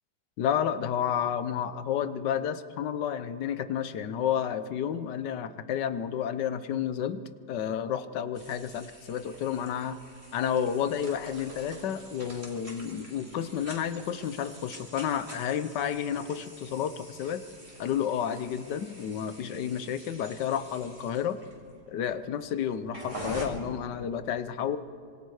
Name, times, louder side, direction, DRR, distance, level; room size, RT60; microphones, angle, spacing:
voice 1, 0.4-7.2 7.5-10.0 10.3-17.4 17.8-21.4 21.9-24.8, left 9 dB, 85° left, 12 dB, 1.5 m, -31 dB
sound 1, 8.3-23.5, right 1 dB, 20° right, 3.2 m, -46 dB
26.0 x 25.5 x 4.8 m, 2.5 s
omnidirectional pair, 1.8 m